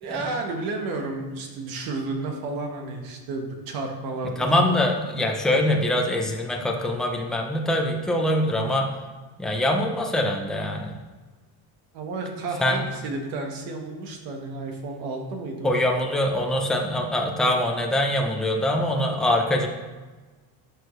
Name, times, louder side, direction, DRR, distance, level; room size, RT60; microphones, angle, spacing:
voice 1, 0.0-4.8 11.9-15.8, right 3 dB, 60° right, 3 dB, 1.4 m, -32 dB
voice 2, 4.4-8.9 9.4-10.9 12.6-12.8 15.6-19.7, left 1 dB, ahead, 0 dB, 0.6 m, -23 dB
11.0 x 6.4 x 3.2 m, 1.3 s
cardioid pair, 165°, 39 cm